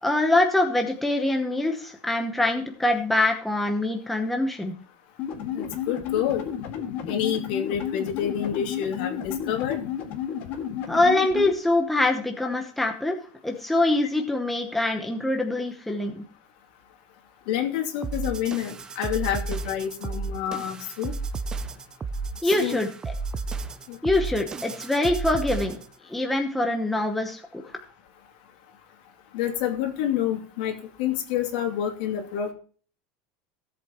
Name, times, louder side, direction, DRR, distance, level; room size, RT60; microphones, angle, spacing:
voice 1, 0.0-4.7 10.9-13.2 13.4-16.2 22.4-23.1 24.0-25.8 26.0-27.6, left 2 dB, 5° left, 3 dB, 0.9 m, -24 dB
sound 1, 5.2-11.5, left 9 dB, 40° left, 1.9 m, -32 dB
voice 2, 5.5-6.5 7.1-9.8 17.5-21.1 22.4-22.8 23.9-24.0 29.3-32.5, left 10 dB, 65° left, 3 dB, 2.6 m, -28 dB
sound 2, 18.0-25.9, right 4 dB, 15° right, 0.4 m, -33 dB
17.0 x 7.9 x 3.0 m, 0.41 s
supercardioid pair, 170°, 5 cm